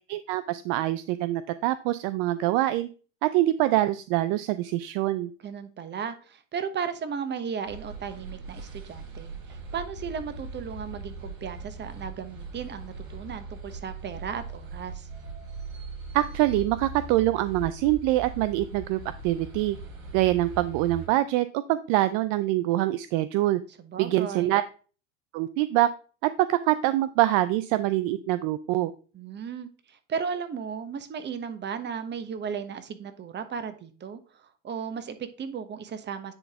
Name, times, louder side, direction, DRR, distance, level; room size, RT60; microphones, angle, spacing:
voice 1, 0.1-2.9 3.2-5.3 16.1-19.8 20.1-23.6 24.0-24.6 25.3-25.9 26.2-28.9, right 15 dB, 55° right, 14 dB, 0.5 m, -25 dB
voice 2, 5.4-15.1 23.8-24.6 29.1-36.3, right 6 dB, 30° right, 11 dB, 1.1 m, -35 dB
sound 1, 7.6-21.1, right 3 dB, 90° right, 3.7 m, -40 dB
9.9 x 4.1 x 3.6 m, 0.38 s
hypercardioid pair, 100°, 38 cm